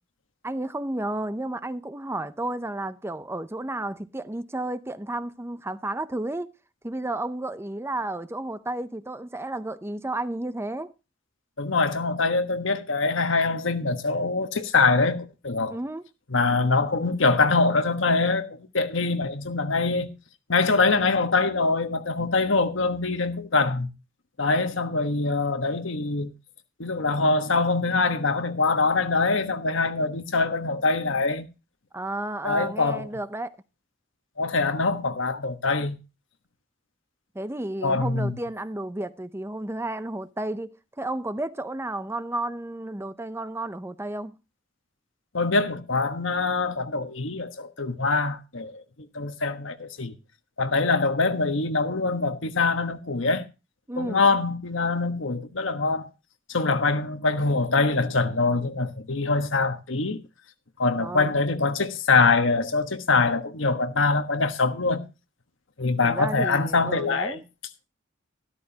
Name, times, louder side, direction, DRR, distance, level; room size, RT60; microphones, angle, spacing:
voice 1, 0.4-6.5 6.8-10.9 15.7-16.0 31.9-33.6 37.3-44.4 53.9-54.2 61.0-61.3 66.0-67.4, right 1 dB, 15° right, 0.6 m, -32 dB
voice 2, 11.6-15.8 16.3-20.1 20.5-23.9 24.4-26.3 26.8-31.5 32.4-33.1 34.4-36.0 37.8-38.3 45.3-48.8 49.1-50.1 50.6-53.5 54.0-56.1 56.5-60.2 60.8-65.1 65.8-67.4, left 3 dB, 75° left, 1.3 m, -24 dB
13.5 x 13.0 x 2.8 m
head